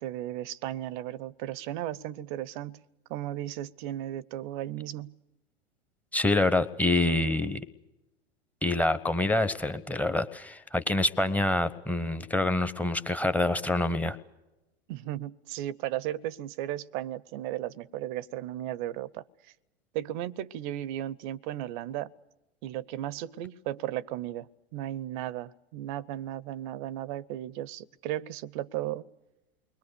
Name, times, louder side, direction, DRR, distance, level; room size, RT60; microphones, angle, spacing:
voice 1, 0.0-2.8 3.1-5.1 14.9-19.2 19.9-22.1 22.6-29.0, right 13 dB, 45° right, 0.7 m, -35 dB
voice 2, 6.1-7.6 8.6-14.2, left 2 dB, 5° left, 0.9 m, -26 dB
29.0 x 22.0 x 6.8 m
hypercardioid pair, 100°, 33 cm